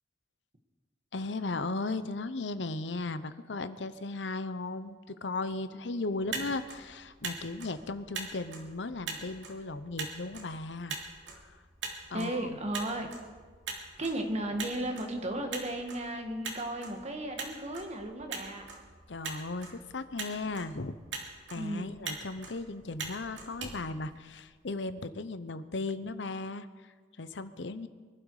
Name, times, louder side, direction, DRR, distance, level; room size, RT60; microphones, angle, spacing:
voice 1, 1.1-11.0 11.4-11.6 12.1-12.6 19.1-21.0 21.5-27.9, left 3 dB, 75° left, 13 dB, 0.8 m, -36 dB
Motor vehicle (road), 6.1-24.7, right 4 dB, 75° right, 2.8 m, -43 dB
voice 2, 12.1-13.1 14.0-18.7 21.5-21.9, right 1 dB, 35° right, 3 dB, 1.9 m, -35 dB
23.5 x 12.0 x 5.0 m, 1.5 s
head